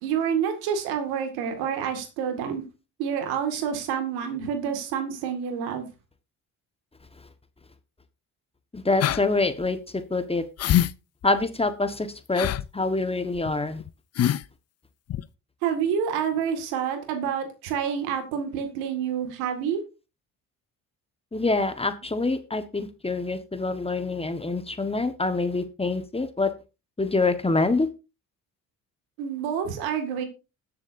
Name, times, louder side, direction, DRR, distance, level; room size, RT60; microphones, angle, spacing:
voice 1, 0.0-2.6 3.0-5.9 15.6-19.8 29.2-30.2, right 8 dB, 90° right, 6 dB, 2.1 m, -28 dB
voice 2, 8.7-10.4 11.2-13.8 21.3-26.5 27.0-27.9, left 3 dB, 15° left, 10 dB, 1.3 m, -26 dB
sound 1, 9.0-9.2 9.6-9.7 10.6-10.9 11.2-11.3 12.3-12.7 13.4-13.5 13.8-13.9 14.2-14.5 15.1-15.2, left 12 dB, 45° left, 0.5 m, -24 dB
20.5 x 7.1 x 2.6 m, 0.30 s
supercardioid pair, 65°, 36 cm